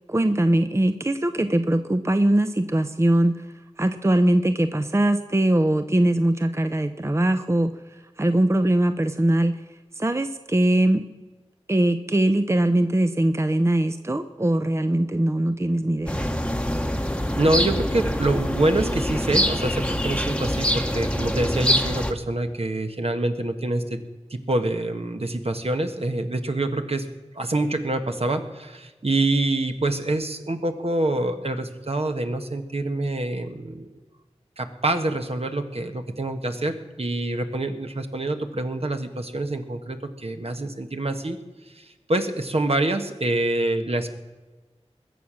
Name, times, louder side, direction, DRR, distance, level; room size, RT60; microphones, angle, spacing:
voice 1, 0.1-3.3 3.8-7.7 8.2-9.5 10.0-11.0 11.7-16.2, right 1 dB, 25° right, 9 dB, 0.6 m, -21 dB
sound 1, 16.1-22.1, equal, 10° left, 1.1 m, -25 dB
voice 2, 17.1-24.0 24.3-27.0 27.3-33.9 34.6-41.4 41.7-44.1, right 2 dB, 60° right, 6 dB, 1.3 m, -26 dB
21.0 x 7.5 x 6.3 m, 1.2 s
wide cardioid pair, 50°, 12 cm